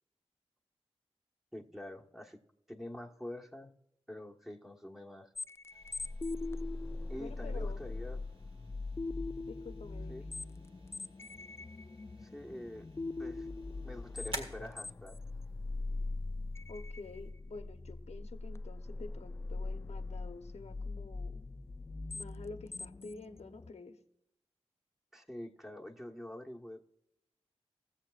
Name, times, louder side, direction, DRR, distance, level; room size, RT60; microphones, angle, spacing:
voice 1, 1.5-2.4 2.7-3.7 4.1-5.3 7.1-8.2 10.1-10.3 12.2-12.9 13.2-13.5 13.8-15.2 25.1-26.8, left 1 dB, 5° right, 0 dB, 1.3 m, -46 dB
sound 1, 5.4-23.7, left 3 dB, 25° left, 0.3 m, -41 dB
sound 2, 5.7-17.3, right 1 dB, 55° right, 1.7 m, -52 dB
voice 2, 7.2-7.8 9.5-10.2 16.7-21.4 22.1-24.0, left 3 dB, 75° left, 7 dB, 0.9 m, -49 dB
19.5 x 7.4 x 2.4 m, 0.82 s
cardioid pair, 40°, 11 cm